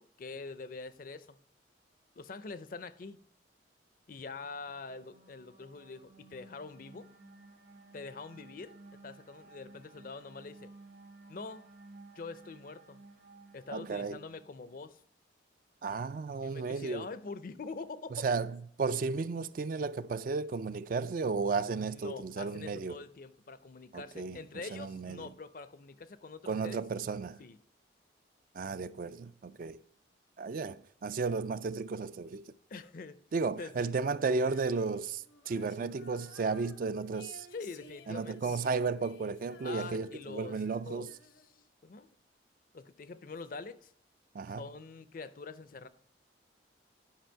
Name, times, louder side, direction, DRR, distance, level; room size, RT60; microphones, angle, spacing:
voice 1, 0.0-1.4 2.2-3.2 4.1-7.1 7.9-8.7 9.0-10.7 11.3-11.6 12.2-13.0 13.5-15.0 16.4-18.3 21.8-26.8 27.4-27.6 32.7-33.2 33.6-33.7 37.5-38.5 39.6-40.5 40.8-41.1 41.8-42.2 42.7-43.9 44.6-45.9, left 4 dB, 45° left, 0.5 m, -44 dB
sound 1, 4.4-14.8, right 2 dB, 60° right, 1.5 m, -56 dB
voice 2, 13.7-14.2 15.8-17.1 18.1-23.0 23.9-25.3 26.5-27.4 28.5-29.8 30.4-32.5 33.3-37.5 38.1-41.1 44.3-44.7, right 4 dB, 45° right, 0.3 m, -34 dB
Female singing, 34.3-41.7, left 4 dB, 80° left, 1.0 m, -56 dB
10.5 x 5.5 x 4.5 m
head